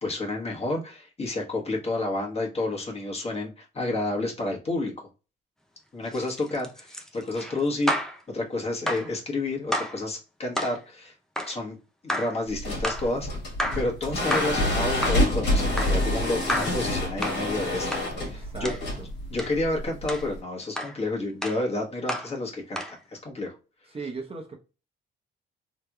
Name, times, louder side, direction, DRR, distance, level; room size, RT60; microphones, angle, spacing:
voice 1, 0.0-4.9 5.9-11.1 11.5-11.8 12.0-13.3 13.7-17.9 18.3-18.7 19.3-23.5, left 2 dB, 30° left, 1.3 m, -30 dB
sound 1, 6.1-8.2 8.9-9.1 9.7-10.0 10.5-10.8 11.4-11.6 12.1-12.4 12.8-13.1 13.6-13.9 14.3-14.6 15.0-15.3 15.8-16.0 16.5-16.8 17.2-17.5 17.9-18.1 18.6-18.8 19.4-19.6 20.1-20.3 20.8-21.0 21.4-21.6 22.1-22.3 22.8-23.0, equal, 5° left, 0.6 m, -30 dB
sound 2, 12.5-20.4, left 1 dB, 60° left, 1.6 m, -27 dB
voice 2, 18.2-19.1 23.9-24.6, right 4 dB, 30° right, 0.9 m, -38 dB
3.3 x 3.0 x 2.3 m
cardioid pair, 90°, 20 cm